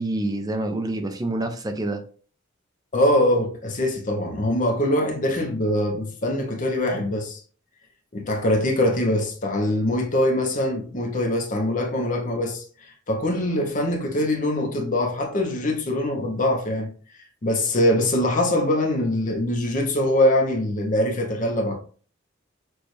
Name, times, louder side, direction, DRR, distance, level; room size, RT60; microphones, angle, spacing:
voice 1, 0.0-2.0, right 2 dB, 20° right, 0.6 m, -27 dB
voice 2, 2.9-7.4 8.1-12.6 13.1-16.9 17.4-21.7, left 1 dB, 40° left, 0.8 m, -23 dB
6.2 x 2.5 x 3.2 m
head